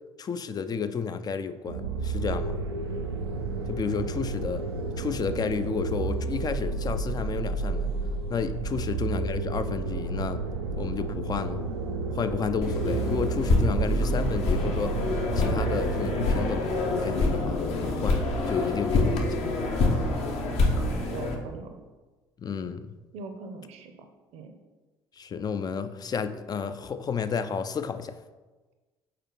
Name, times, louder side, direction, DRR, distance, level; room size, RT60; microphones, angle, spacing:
voice 1, 0.2-2.6 3.7-4.6 5.0-7.9 8.3-10.5 10.8-11.6 12.1-15.0 15.4-19.5 22.4-23.0 25.2-28.1, left 6 dB, 30° left, 11 dB, 0.5 m, -31 dB
sound 1, 1.7-16.4, right 3 dB, 80° right, 0.4 m, -31 dB
sound 2, 12.6-21.3, left 2 dB, 55° left, 1.0 m, -26 dB
voice 2, 20.8-21.8 23.1-24.1 24.3-24.5, right 4 dB, 55° right, 6 dB, 0.7 m, -41 dB
4.9 x 4.5 x 4.6 m, 1.2 s
figure-of-eight pair, 50°, 13 cm